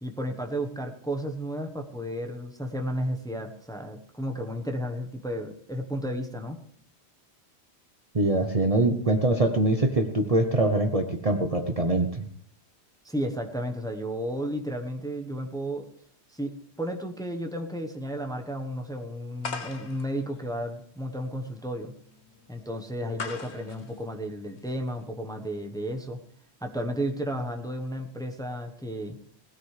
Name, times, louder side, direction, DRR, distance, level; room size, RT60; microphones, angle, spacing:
voice 1, 0.0-6.6 13.0-15.9 16.3-21.9 22.5-26.2 26.6-29.2, equal, 5° left, 3 dB, 1.0 m, -33 dB
voice 2, 8.1-12.2, right 2 dB, 35° right, 5 dB, 0.9 m, -23 dB
sound 1, 19.4-25.0, left 4 dB, 85° left, 1.3 m, -41 dB
19.0 x 13.0 x 3.3 m, 0.63 s
omnidirectional pair, 1.1 m